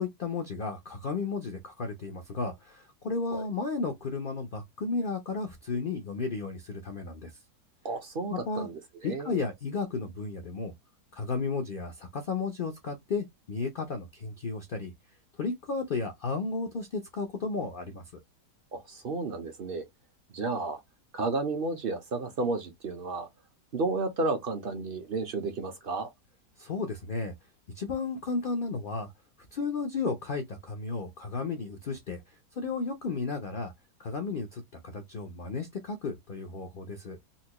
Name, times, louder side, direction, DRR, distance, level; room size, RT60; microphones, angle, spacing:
voice 1, 0.0-7.3 8.3-8.7 9.0-10.7 11.1-14.9 15.4-18.0 26.6-27.3 27.8-29.1 29.5-33.7 34.0-37.2, left 4 dB, 60° left, 0.5 m, -33 dB
voice 2, 7.8-9.4 18.7-19.8 20.3-20.8 21.1-23.3 23.7-26.1, right 3 dB, 50° right, 0.7 m, -32 dB
4.2 x 2.2 x 2.8 m
omnidirectional pair, 1.8 m